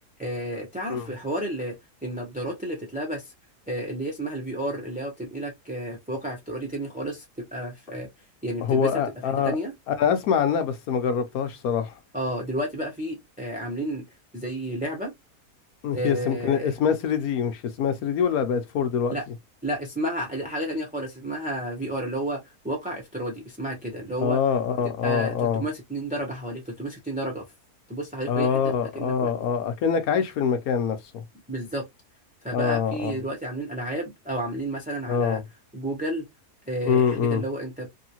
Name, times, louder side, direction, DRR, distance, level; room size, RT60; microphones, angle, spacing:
voice 1, 0.2-1.7 2.0-3.3 3.7-7.2 7.5-8.1 8.4-8.9 9.4-9.7 12.1-14.0 14.3-15.1 15.9-16.7 19.1-19.2 19.6-24.4 25.0-27.4 27.9-28.6 28.9-29.3 31.5-31.8 32.4-35.4 35.7-36.3 36.7-37.9, right 1 dB, 10° right, 0.6 m, -31 dB
voice 2, 8.6-9.6 9.9-12.0 15.8-19.1 24.2-25.6 28.3-31.2 32.5-33.2 35.1-35.4 36.8-37.4, left 7 dB, 70° left, 1.1 m, -24 dB
3.1 x 2.7 x 2.8 m
omnidirectional pair, 1.7 m